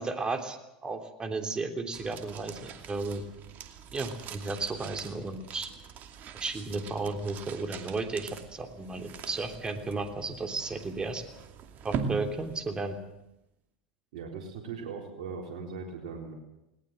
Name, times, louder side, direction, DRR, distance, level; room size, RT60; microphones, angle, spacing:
voice 1, 0.0-3.2 3.9-5.7 6.4-11.2 11.8-13.0, right 3 dB, 20° right, 6 dB, 3.3 m, -34 dB
sound 1, 1.9-13.3, right 6 dB, 45° right, 2.5 m, -42 dB
voice 2, 14.1-16.4, right 5 dB, 70° right, 0 dB, 4.0 m, -39 dB
20.0 x 19.0 x 7.9 m, 0.88 s
hypercardioid pair, 95°, 4 cm